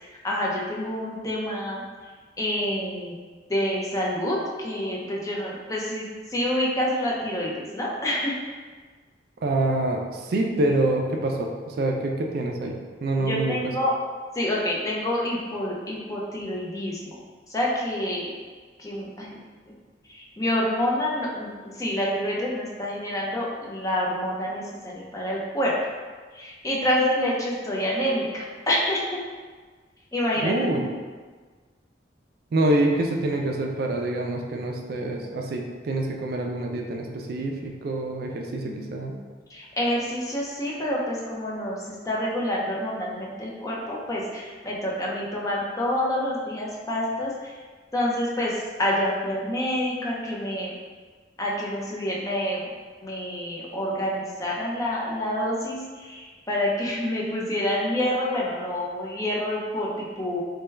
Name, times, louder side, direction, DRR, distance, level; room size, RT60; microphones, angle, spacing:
voice 1, 0.0-1.8 2.4-3.2 3.5-6.1 6.3-8.3 13.2-13.9 14.4-17.2 17.5-18.3 18.8-19.4 20.1-25.7 26.3-29.2 30.1-30.5 38.6-39.2 39.5-41.8 42.1-47.5 47.9-48.5 48.8-50.7 51.4-52.6 53.0-60.4, left 1 dB, 20° left, -4 dB, 0.5 m, -27 dB
voice 2, 9.4-10.0 10.3-12.7 13.0-13.6 30.4-30.9 32.5-38.6 38.9-39.1, right 2 dB, 60° right, 2 dB, 0.3 m, -26 dB
3.3 x 2.2 x 3.2 m, 1.5 s
head